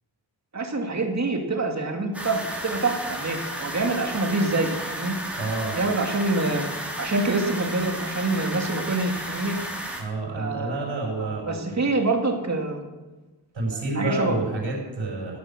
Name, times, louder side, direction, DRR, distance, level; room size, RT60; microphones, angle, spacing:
voice 1, 0.5-5.1 5.7-6.6 7.0-9.6 10.4-12.8 13.7-14.3, right 2 dB, 35° right, 3 dB, 2.4 m, -26 dB
sound 1, 2.1-10.0, right 1 dB, 5° right, 3.3 m, -33 dB
voice 2, 5.4-5.8 10.0-11.9 13.5-15.4, right 2 dB, 75° right, -5 dB, 5.9 m, -29 dB
14.0 x 10.0 x 7.5 m, 1.2 s
wide cardioid pair, 120°, 45 cm